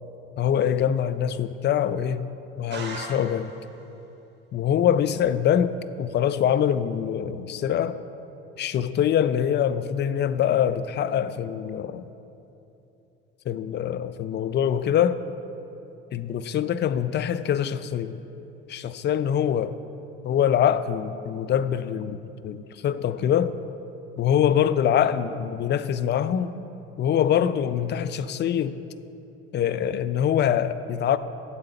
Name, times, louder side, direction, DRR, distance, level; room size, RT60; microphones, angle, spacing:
voice 1, 0.4-2.2 2.6-3.5 4.5-8.0 8.6-12.1 13.5-15.2 16.1-18.2 18.7-19.8 20.2-23.5 24.2-26.5 27.0-28.8 29.5-31.2, left 9 dB, 35° left, 0.4 m, -24 dB
sound 1, 2.7-3.8, right 3 dB, 35° right, 1.7 m, -37 dB
8.3 x 7.5 x 5.7 m
figure-of-eight pair, 55°, 31 cm